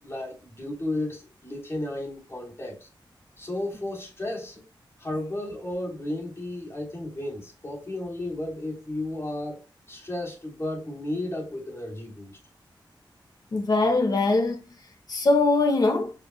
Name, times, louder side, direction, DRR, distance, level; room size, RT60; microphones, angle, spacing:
voice 1, 0.0-2.9 3.4-4.6 5.0-12.4, left 1 dB, 30° left, 3.4 m, -33 dB
voice 2, 13.5-14.6 15.1-16.1, left 2 dB, 50° left, 1.6 m, -22 dB
7.9 x 5.4 x 2.2 m
wide cardioid pair, 130°, 8 cm